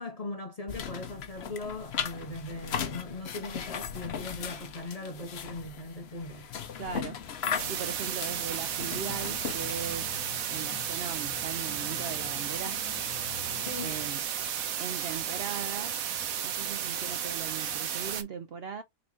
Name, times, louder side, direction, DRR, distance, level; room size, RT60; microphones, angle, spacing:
voice 1, 0.0-6.5 13.6-14.0, left 2 dB, 35° left, 0.6 m, -39 dB
sound 1, 0.7-10.0, left 7 dB, 55° left, 0.9 m, -38 dB
sound 2, 6.5-14.1, left 9 dB, 80° left, 1.1 m, -47 dB
voice 2, 6.8-7.3 7.6-10.2 10.5-12.8 13.8-14.2 14.8-16.0 16.4-18.8, right 7 dB, 60° right, 0.7 m, -39 dB
sound 3, 7.6-18.2, right 9 dB, 80° right, 1.2 m, -33 dB
3.9 x 3.8 x 2.9 m
omnidirectional pair, 1.5 m